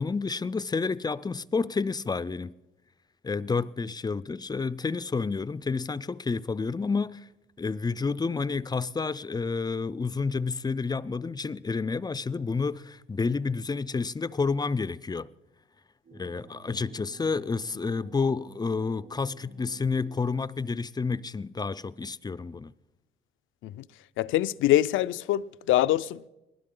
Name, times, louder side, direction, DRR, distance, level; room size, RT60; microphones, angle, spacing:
voice 1, 0.0-2.5 3.2-7.3 7.6-15.3 16.1-22.7, left 4 dB, 20° left, 0.4 m, -30 dB
sound 1, 16.0-20.6, right 5 dB, 60° right, 7.0 m, -52 dB
voice 2, 24.2-26.3, left 14 dB, 80° left, 0.5 m, -24 dB
20.0 x 16.0 x 3.8 m
cardioid pair, 90°, 20 cm